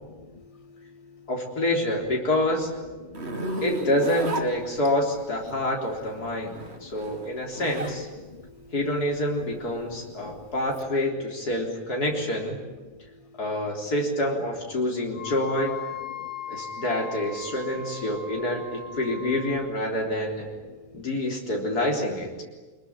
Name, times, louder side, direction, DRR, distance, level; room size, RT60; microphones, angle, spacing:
voice 1, 0.1-1.3 3.0-3.6 5.5-5.6 6.2-7.0 8.2-8.7 9.4-10.5 12.8-13.4 14.8-14.9 16.1-16.7 20.7-21.1, left 4 dB, 25° left, 14 dB, 0.9 m, -49 dB
voice 2, 1.3-2.7 3.6-6.5 6.8-8.1 8.7-12.6 13.4-15.7 16.5-20.5 20.9-22.4, left 1 dB, 90° left, 0 dB, 4.4 m, -27 dB
Zipper (clothing), 3.1-5.2 6.3-8.0 8.4-10.8, right 2 dB, 45° right, 2.6 m, -33 dB
Wind instrument woodwind instrument, 15.1-19.7, left 5 dB, 65° left, 4.8 m, -38 dB
26.5 x 21.0 x 10.0 m, 1.3 s
omnidirectional pair, 1.6 m